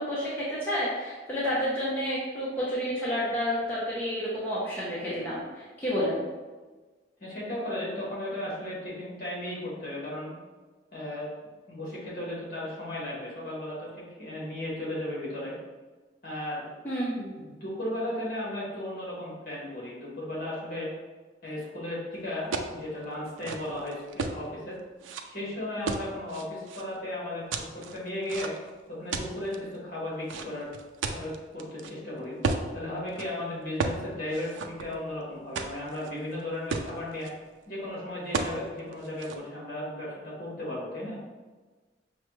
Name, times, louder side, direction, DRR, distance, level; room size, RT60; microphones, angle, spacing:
voice 1, 0.0-6.2 16.8-17.4, equal, 10° left, -9 dB, 0.6 m, -30 dB
voice 2, 7.2-10.4 10.9-11.3 11.7-15.5 16.2-16.7 17.4-20.9 21.4-24.8 25.2-28.5 28.9-30.7 31.1-32.4 32.7-37.3 37.7-41.2, left 1 dB, 50° left, -6 dB, 1.5 m, -35 dB
sound 1, 22.5-22.8 23.3-24.4 25.0-25.2 25.9-26.8 27.5-28.7 29.1-29.6 30.3-31.9 32.4-32.7 33.1-33.3 33.8-34.0 34.3-35.1 35.6-36.1 36.4-36.5 36.7-37.3 38.3-38.6 38.9-39.4, right 4 dB, 85° right, 0.4 m, -33 dB
5.5 x 2.3 x 3.0 m, 1.3 s
head